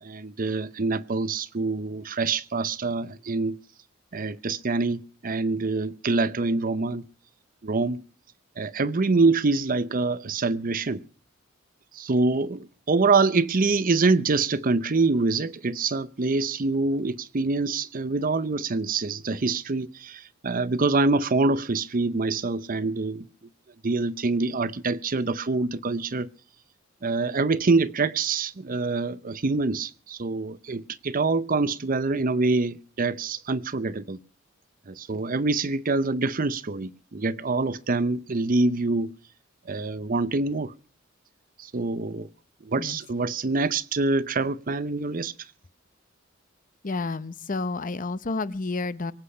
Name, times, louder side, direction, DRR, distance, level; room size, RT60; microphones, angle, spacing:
voice 1, 0.0-3.6 4.1-7.1 7.6-8.0 8.6-11.0 11.9-23.3 23.8-26.3 27.0-34.2 34.9-39.1 39.7-40.7 41.6-42.3 42.6-45.3, right 3 dB, 45° right, 0.7 m, -25 dB
voice 2, 46.8-49.1, left 3 dB, 40° left, 0.8 m, -30 dB
23.5 x 8.4 x 5.7 m
head